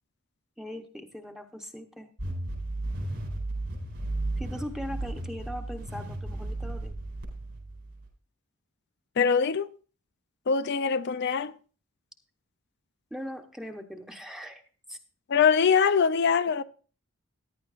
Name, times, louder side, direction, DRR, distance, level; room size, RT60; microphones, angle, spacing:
voice 1, 0.6-2.1 4.4-7.0 13.1-14.6 14.9-15.0 16.5-16.6, equal, ahead, 0.8 m, -40 dB
sound 1, 2.2-8.1, right 2 dB, 60° right, 4.4 m, -34 dB
voice 2, 9.2-9.7 10.5-11.5 15.3-16.6, left 6 dB, 50° left, 0.4 m, -23 dB
14.5 x 10.5 x 2.5 m
head